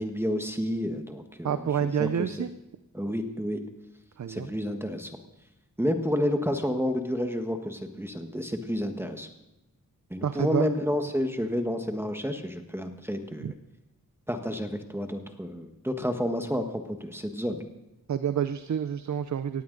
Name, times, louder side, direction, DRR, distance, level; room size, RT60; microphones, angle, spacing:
voice 1, 0.0-2.3 2.9-3.6 4.3-5.1 5.8-9.3 10.1-13.5 14.3-17.6, equal, 5° right, 5 dB, 1.3 m, -30 dB
voice 2, 1.4-2.5 4.2-4.5 10.2-10.7 13.4-13.5 18.1-19.6, right 8 dB, 60° right, 12 dB, 0.6 m, -28 dB
18.0 x 15.5 x 3.9 m, 0.94 s
wide cardioid pair, 95°, 33 cm